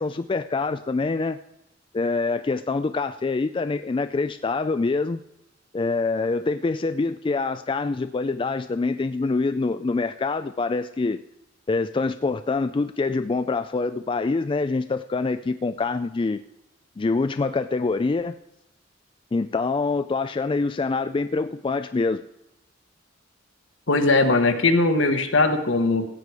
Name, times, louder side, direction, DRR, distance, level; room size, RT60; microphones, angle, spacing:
voice 1, 0.0-1.4 1.9-5.2 5.7-11.2 11.7-16.4 17.0-18.4 19.3-22.2, left 3 dB, 25° left, 10 dB, 0.3 m, -25 dB
voice 2, 23.9-26.0, left 3 dB, 70° left, 7 dB, 1.3 m, -20 dB
15.5 x 8.4 x 4.8 m, 0.85 s
head